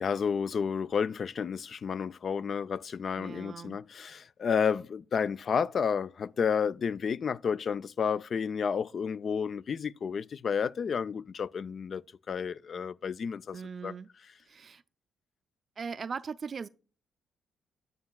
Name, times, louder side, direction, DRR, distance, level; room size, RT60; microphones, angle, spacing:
voice 1, 0.0-12.0 12.3-13.9, left 6 dB, 50° left, 0.3 m, -31 dB
voice 2, 3.2-3.8 13.5-14.1 14.5-14.8 15.8-16.7, right 5 dB, 40° right, 0.3 m, -39 dB
9.6 x 9.3 x 2.2 m
cardioid pair, 90°, 0 cm